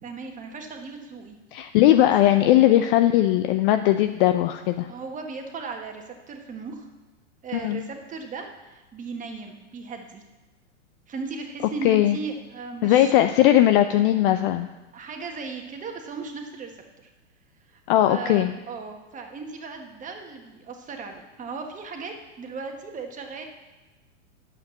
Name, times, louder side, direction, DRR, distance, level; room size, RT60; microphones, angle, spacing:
voice 1, 0.0-1.4 2.2-2.4 4.9-6.8 7.4-10.2 11.1-13.3 14.9-16.7 17.0-17.1 17.7-17.8 18.0-23.5, right 4 dB, 20° right, 4 dB, 1.4 m, -37 dB
voice 2, 1.5-4.9 7.5-7.8 11.8-12.2 12.8-14.7 17.9-18.5, left 13 dB, 50° left, 8 dB, 0.6 m, -19 dB
9.3 x 7.7 x 7.6 m, 1.1 s
hypercardioid pair, 130°, 37 cm